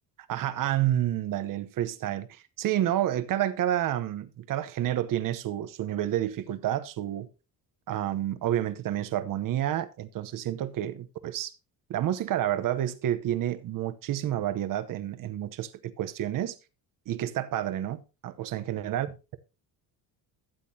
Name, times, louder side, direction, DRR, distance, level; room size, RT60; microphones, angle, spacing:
voice 1, 0.3-7.3 7.9-11.5 11.9-16.6 17.1-19.4, right 12 dB, 55° right, 0.9 m, -29 dB
12.5 x 8.3 x 2.8 m
cardioid pair, 130°, 39 cm